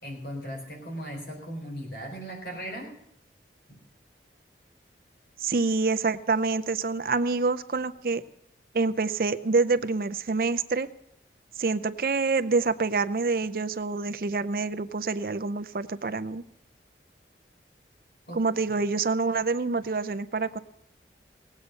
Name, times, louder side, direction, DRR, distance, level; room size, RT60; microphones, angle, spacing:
voice 1, 0.0-2.9 3.7-3.8 18.3-18.4, equal, 65° left, 1 dB, 4.2 m, -37 dB
voice 2, 5.4-8.2 8.7-10.9 11.6-16.4 18.3-20.6, right 4 dB, 55° right, 13 dB, 0.5 m, -26 dB
18.5 x 8.3 x 6.5 m, 0.75 s
head